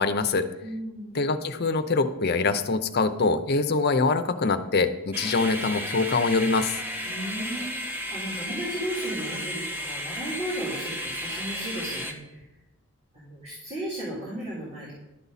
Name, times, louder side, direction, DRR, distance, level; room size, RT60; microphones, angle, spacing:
voice 1, 0.0-0.5 1.1-6.8, left 3 dB, 45° left, 9 dB, 0.6 m, -24 dB
voice 2, 0.6-1.2 7.0-12.5 13.1-14.9, right 1 dB, 25° right, -9 dB, 3.5 m, -35 dB
sound 1, 5.1-12.1, equal, 10° right, 0.8 m, -33 dB
11.5 x 8.2 x 4.1 m, 0.97 s
head